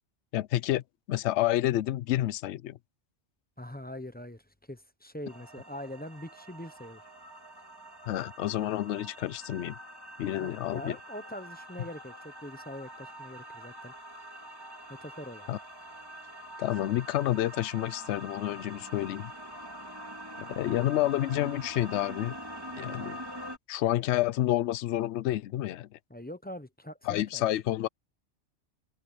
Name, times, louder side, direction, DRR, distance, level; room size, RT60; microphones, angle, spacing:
voice 1, 0.3-2.8 8.1-9.8 10.2-10.9 15.5-15.6 16.6-19.3 20.5-22.4 22.8-23.2 23.7-26.0 27.1-27.9, left 14 dB, 70° left, 0.9 m, -29 dB
voice 2, 3.6-7.0 10.4-13.9 14.9-15.5 26.1-27.4, left 1 dB, 10° left, 0.6 m, -43 dB
sound 1, 5.3-23.6, equal, 20° right, 3.7 m, -45 dB
open air
omnidirectional pair, 1.2 m